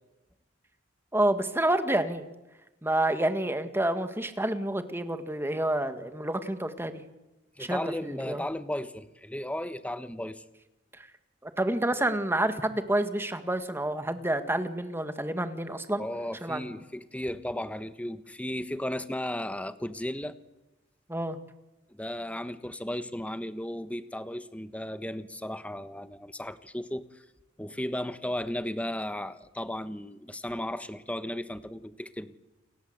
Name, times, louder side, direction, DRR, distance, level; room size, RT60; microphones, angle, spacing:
voice 1, 1.1-2.3 2.8-7.0 7.6-8.4 11.0-11.1 11.4-16.0 16.4-16.7 21.1-21.4, right 1 dB, 10° right, 9 dB, 1.9 m, -28 dB
voice 2, 7.6-10.4 16.0-20.3 21.9-27.0 27.6-32.4, left 1 dB, 5° left, 12 dB, 1.2 m, -35 dB
29.5 x 21.5 x 8.1 m, 1.0 s
head